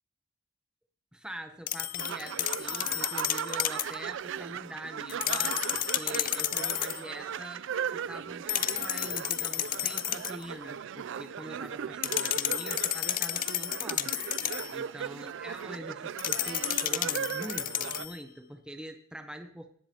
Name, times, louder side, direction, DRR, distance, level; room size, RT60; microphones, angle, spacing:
voice 1, 1.1-14.2 14.7-19.7, equal, 5° right, 6 dB, 0.7 m, -44 dB
sound 1, 1.7-4.0 5.1-7.0 8.5-10.4 12.0-14.8 16.2-18.2, left 13 dB, 40° left, 0.4 m, -31 dB
sound 2, 2.0-18.1, right 8 dB, 60° right, 0.3 m, -38 dB
17.5 x 10.5 x 2.8 m, 0.62 s
head